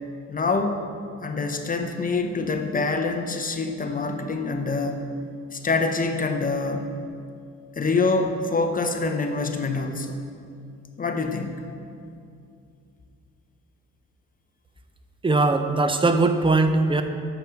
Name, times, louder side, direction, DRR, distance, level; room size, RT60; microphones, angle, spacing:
voice 1, 0.3-0.8 1.2-5.0 5.5-6.9 7.8-10.2 11.0-11.6, left 3 dB, 30° left, 5 dB, 0.6 m, -25 dB
voice 2, 15.2-17.0, right 3 dB, 15° right, 7 dB, 0.5 m, -20 dB
6.6 x 5.9 x 5.0 m, 2.4 s
cardioid pair, 90°, 30 cm